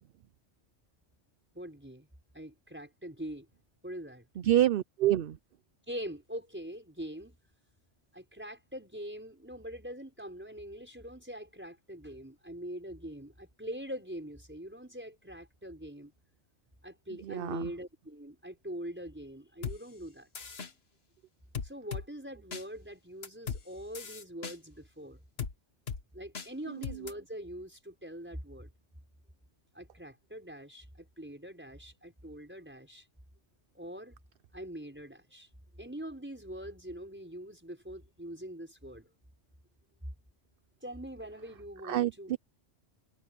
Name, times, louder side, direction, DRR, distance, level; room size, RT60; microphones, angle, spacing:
voice 1, 1.5-2.1 2.3-3.5 3.8-4.3 5.9-7.4 8.1-16.1 16.8-20.3 21.6-25.2 26.1-28.7 29.7-33.1 33.7-34.2 34.5-35.5 35.8-39.1 40.8-42.4, equal, 10° right, 5.3 m, -43 dB
voice 2, 4.4-5.4 17.3-17.7 41.8-42.4, right 12 dB, 60° right, 0.7 m, -27 dB
sound 1, 19.6-19.8 20.4-20.7 21.6-22.1 22.5-22.6 23.2-23.6 24.0-24.6 25.4-25.5 25.9-26.0 26.4-26.5 26.8-27.1, left 6 dB, 60° left, 1.6 m, -37 dB
omnidirectional pair, 1.2 m